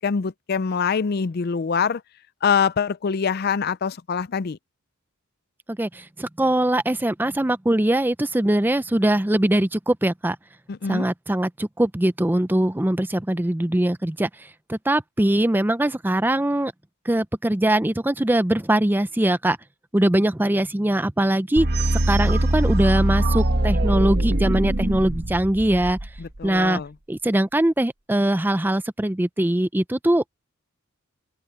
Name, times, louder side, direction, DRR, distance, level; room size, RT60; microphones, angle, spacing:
voice 1, 0.0-2.0 2.4-4.6 10.7-11.1 26.2-26.9, left 6 dB, 45° left, 0.4 m, -24 dB
voice 2, 5.7-10.4 10.9-16.7 17.1-19.6 19.9-21.7 22.1-26.0 26.4-26.8 27.1-30.3, right 1 dB, 10° right, 0.5 m, -22 dB
sound 1, 21.6-26.5, right 1 dB, 45° right, 1.2 m, -22 dB
open air
head